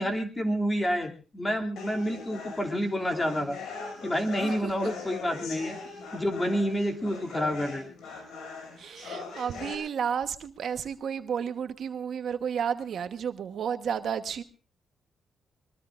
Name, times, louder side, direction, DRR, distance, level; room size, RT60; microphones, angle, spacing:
voice 1, 0.0-3.6 4.0-5.8 6.1-7.8 8.1-8.2, equal, 20° left, 3 dB, 2.7 m, -29 dB
sound 1, 1.8-9.7, left 4 dB, 85° left, 6.0 m, -41 dB
voice 2, 4.4-4.9 8.8-14.4, right 7 dB, 65° right, 8 dB, 1.2 m, -32 dB
23.5 x 22.0 x 2.5 m, 0.36 s
cardioid pair, 110°, 0 cm